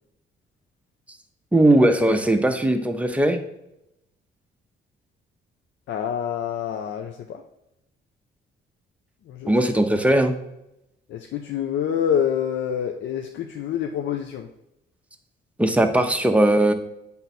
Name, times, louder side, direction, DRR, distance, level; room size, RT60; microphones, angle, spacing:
voice 1, 1.5-3.4 9.5-10.4 15.6-16.7, right 1 dB, 5° right, 5 dB, 0.7 m, -19 dB
voice 2, 5.9-7.4 9.3-9.5 11.1-14.5, left 9 dB, 70° left, 4 dB, 0.5 m, -27 dB
7.8 x 3.5 x 4.2 m, 0.88 s
cardioid pair, 90°, 20 cm